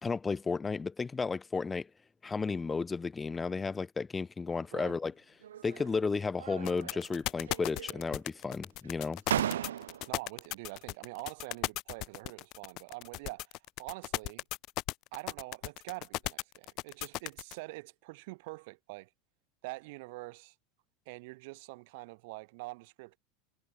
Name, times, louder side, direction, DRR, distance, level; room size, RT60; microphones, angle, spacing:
voice 1, 0.0-1.9 2.2-5.1 5.6-9.2, left 4 dB, 20° left, 1.5 m, -33 dB
sound 1, 5.4-6.0 6.4-7.2 7.4-8.2 8.8-8.9 9.3-10.2, right 10 dB, 85° right, 2.9 m, -36 dB
sound 2, 6.6-17.5, left 20 dB, 55° left, 1.6 m, -36 dB
voice 2, 10.1-13.5 13.8-14.4 15.1-19.1 19.6-20.5 21.1-23.2, right 25 dB, 65° right, 5.9 m, -45 dB
hypercardioid pair, 100°, 0 cm